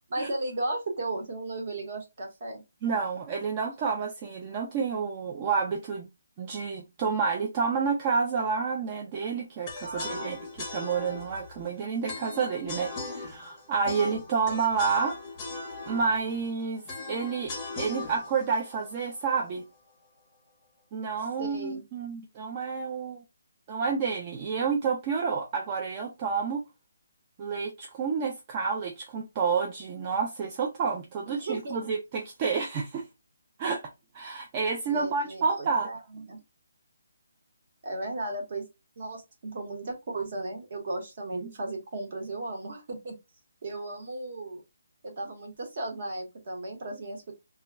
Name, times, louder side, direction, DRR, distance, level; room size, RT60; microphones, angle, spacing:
voice 1, 0.1-2.6 9.8-10.4 21.4-21.8 31.3-31.8 34.9-36.4 37.8-38.7 39.0-43.2 43.6-44.6 45.0-47.3, right 2 dB, 40° right, 0.9 m, -35 dB
voice 2, 2.8-6.1 6.4-10.4 10.7-15.2 15.9-16.8 17.1-19.6 20.9-23.2 23.7-26.6 27.4-33.0 33.6-33.8 34.1-35.9 41.4-41.5, right 5 dB, 20° right, 0.3 m, -29 dB
sound 1, 9.7-19.7, left 3 dB, 15° left, 0.6 m, -40 dB
2.2 x 2.1 x 3.4 m
hypercardioid pair, 170°, 0 cm